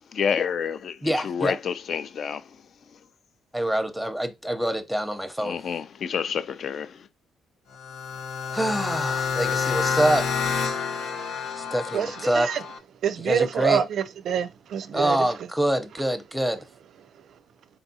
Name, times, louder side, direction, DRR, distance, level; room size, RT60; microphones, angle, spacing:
voice 1, 0.1-2.4 5.4-7.1, left 7 dB, 60° left, 0.4 m, -29 dB
voice 2, 1.0-1.6 3.5-5.6 8.5-10.3 11.6-12.5 13.2-13.8 14.9-16.7, right 1 dB, ahead, 0.7 m, -25 dB
sound 1, 7.7-12.8, left 6 dB, 85° left, 0.8 m, -28 dB
voice 3, 11.9-12.6 13.0-15.3, right 8 dB, 65° right, 0.4 m, -26 dB
4.0 x 3.5 x 2.7 m
cardioid pair, 90°, 0 cm